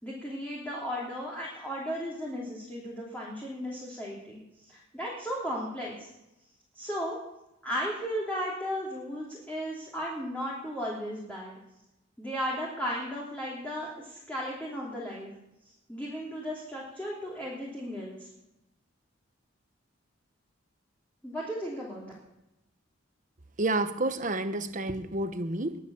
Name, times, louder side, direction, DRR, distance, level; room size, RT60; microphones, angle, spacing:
voice 1, 0.0-6.1 6.7-7.2 7.6-11.6 12.2-15.3 15.9-18.3 21.2-22.1, equal, 10° left, -5 dB, 3.1 m, -35 dB
voice 2, 23.6-25.8, right 2 dB, 40° right, 10 dB, 1.0 m, -29 dB
21.0 x 7.2 x 7.1 m, 0.92 s
head